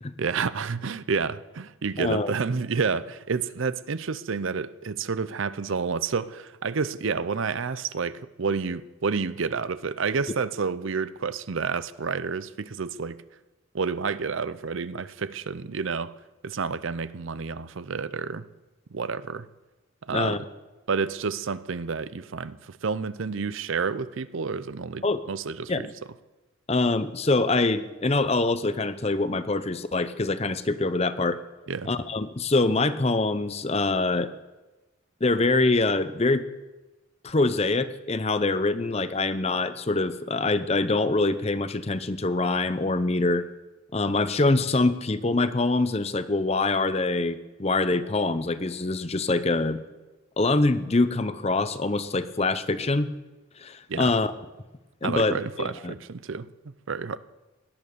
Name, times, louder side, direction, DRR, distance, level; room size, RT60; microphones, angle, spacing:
voice 1, 0.2-13.2 13.7-16.1 16.4-18.5 18.9-19.5 20.0-20.4 20.9-25.9 31.7-31.9 53.9-54.1 55.0-56.5 56.9-57.2, right 5 dB, 65° right, 0.6 m, -29 dB
voice 2, 2.0-2.3 20.1-20.4 25.0-25.2 25.7-25.9 26.7-31.4 31.9-34.3 35.2-36.4 37.2-43.4 43.9-49.8 50.4-53.1 53.6-54.3 55.0-55.9, left 2 dB, 30° left, 0.7 m, -24 dB
17.5 x 11.0 x 6.8 m
head